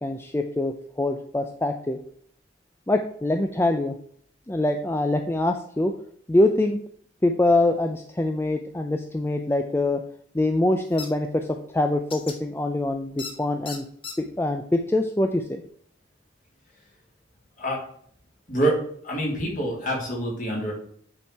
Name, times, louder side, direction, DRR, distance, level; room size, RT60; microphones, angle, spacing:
voice 1, 0.0-2.0 2.9-3.9 4.5-5.9 6.3-6.8 7.2-10.0 10.3-11.5 11.7-13.8 14.2-15.6, left 2 dB, 15° left, 5 dB, 0.4 m, -24 dB
sound 1, 11.0-11.1 12.1-12.4 13.2-13.3 13.6-14.1, left 5 dB, 30° left, 1.1 m, -35 dB
voice 2, 18.5-18.8 19.0-20.7, right 1 dB, 45° left, -2 dB, 3.0 m, -26 dB
8.6 x 4.4 x 4.6 m, 0.63 s
head